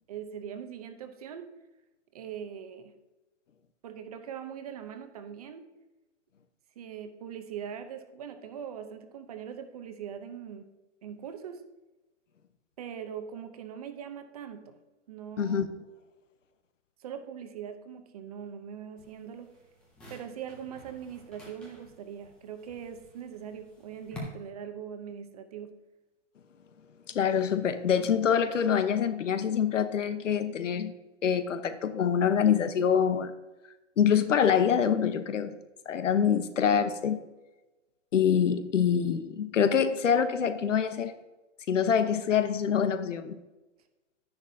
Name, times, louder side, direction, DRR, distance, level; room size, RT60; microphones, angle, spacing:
voice 1, 0.1-1.5 2.1-3.0 3.8-5.7 6.8-10.7 11.0-11.6 12.8-14.7 15.1-15.6 17.0-19.5 20.1-25.7, right 8 dB, 30° right, 8 dB, 0.7 m, -41 dB
voice 2, 15.4-15.7 27.1-30.9 31.2-33.3 34.0-35.6 35.9-37.2 38.1-41.1 41.7-43.3, left 7 dB, 85° left, 10 dB, 1.1 m, -25 dB
sound 1, 19.0-24.2, left 3 dB, 5° left, 0.5 m, -52 dB
11.5 x 10.0 x 2.8 m, 1.1 s
hypercardioid pair, 160°, 36 cm